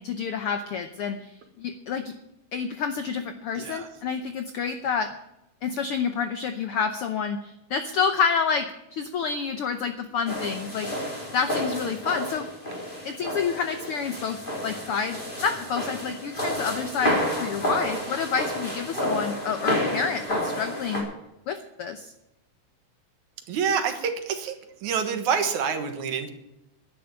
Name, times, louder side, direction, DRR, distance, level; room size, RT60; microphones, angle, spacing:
voice 1, 0.0-2.1 2.5-5.1 5.6-11.1 11.3-12.5 13.0-21.1 21.5-22.1, left 6 dB, 90° left, 9 dB, 1.2 m, -29 dB
sound 1, 10.3-21.0, equal, 15° left, 3.8 m, -30 dB
voice 2, 23.5-24.5 24.8-26.3, right 6 dB, 70° right, 7 dB, 2.7 m, -27 dB
11.0 x 10.5 x 8.8 m, 0.90 s
omnidirectional pair, 3.6 m